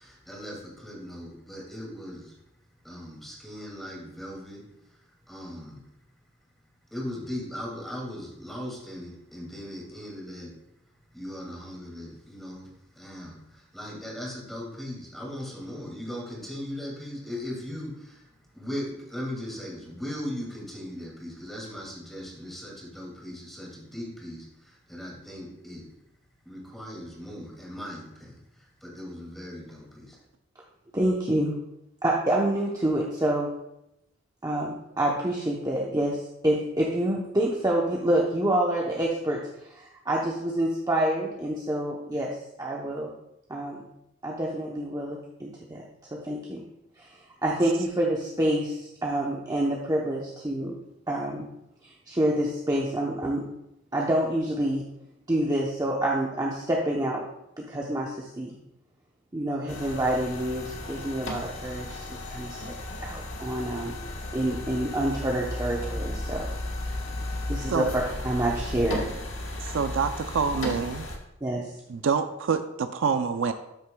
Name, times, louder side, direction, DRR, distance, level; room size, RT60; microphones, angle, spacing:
voice 1, 0.0-2.4 2.8-5.8 6.9-10.6 11.1-25.9 26.4-30.2, left 1 dB, ahead, -3 dB, 2.3 m, -39 dB
voice 2, 30.9-31.5 32.0-33.5 34.4-43.1 43.5-43.9 44.2-45.8 46.1-46.6 47.0-47.1 47.4-50.7 51.1-51.5 51.8-53.4 53.9-54.8 55.3-57.2 57.6-58.6 59.3-62.0 62.3-62.6 63.0-64.0 64.3-66.5 67.5-69.1 71.4-71.7, right 1 dB, 20° right, -3 dB, 0.8 m, -27 dB
sound 1, 59.7-71.2, left 1 dB, 70° left, 1.3 m, -35 dB
voice 3, 69.6-71.1 71.9-73.5, right 5 dB, 70° right, 9 dB, 0.4 m, -26 dB
12.5 x 6.4 x 2.3 m, 0.84 s
head